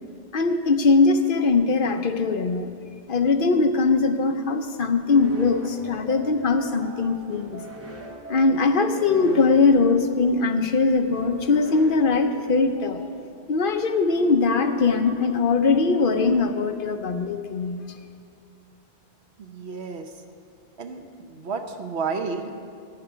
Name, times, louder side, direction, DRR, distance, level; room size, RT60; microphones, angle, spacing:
voice 1, 0.3-2.7 3.1-7.6 8.3-13.1 13.5-17.9, left 4 dB, 55° left, 7 dB, 0.9 m, -21 dB
sound 1, 5.1-12.8, equal, 15° right, 1.3 m, -41 dB
voice 2, 19.4-20.1 20.8-22.5, right 5 dB, 75° right, 5 dB, 1.2 m, -31 dB
16.0 x 9.1 x 5.0 m, 2.3 s
omnidirectional pair, 1.1 m